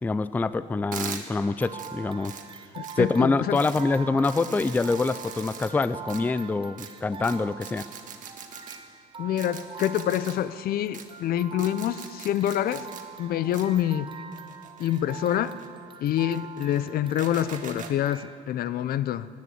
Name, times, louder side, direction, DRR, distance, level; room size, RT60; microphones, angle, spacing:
voice 1, 0.0-2.4 3.0-7.8, left 3 dB, 10° left, 15 dB, 0.3 m, -25 dB
sound 1, 0.9-1.2 1.8-1.9 2.2-2.4 2.8-2.9 3.6-3.8 4.2-5.7 6.1-6.2 6.8-6.9 7.2-7.3 7.6-8.8 9.4-10.3 10.9-11.0 11.6-13.0 13.5-13.6 14.3-15.7 16.2-16.8 17.2-17.9, right 7 dB, 50° right, 1.5 m, -41 dB
sound 2, 1.4-18.4, right 7 dB, 30° right, 0.8 m, -44 dB
voice 2, 2.8-3.6 9.2-12.9 13.2-14.1 14.8-15.5 16.0-19.3, left 11 dB, 60° left, 15 dB, 0.6 m, -26 dB
17.5 x 9.6 x 7.9 m, 2.2 s
cardioid pair, 110°, 17 cm